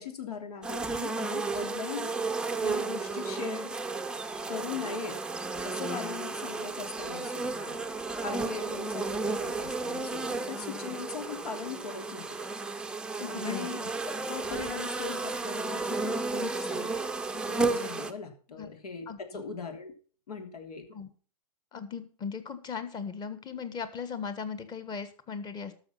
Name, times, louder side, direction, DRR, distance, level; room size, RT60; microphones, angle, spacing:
voice 1, 0.0-2.1 2.6-3.8 4.5-5.2 5.6-7.8 8.2-12.2 13.3-13.8 14.0-17.0 17.5-19.9 20.3-20.8, left 5 dB, 75° left, 5 dB, 3.2 m, -39 dB
sound 1, 0.6-18.1, right 3 dB, 5° right, 0.7 m, -33 dB
voice 2, 13.2-13.9 18.6-18.7 19.1-19.4 20.9-21.1 21.7-25.7, left 6 dB, 20° left, 11 dB, 1.5 m, -38 dB
13.0 x 6.4 x 5.7 m, 0.41 s
hypercardioid pair, 130°, 20 cm